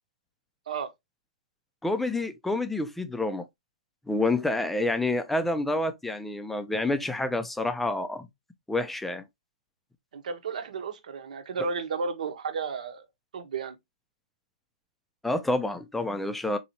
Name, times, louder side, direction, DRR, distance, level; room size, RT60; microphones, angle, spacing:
voice 1, 1.8-3.5 4.1-8.3 8.7-9.2 15.2-16.6, left 2 dB, 5° left, 0.4 m, -28 dB
voice 2, 10.1-13.0 13.3-13.8, right 5 dB, 70° right, 1.0 m, -33 dB
4.0 x 2.8 x 2.9 m
hypercardioid pair, 145°, 4 cm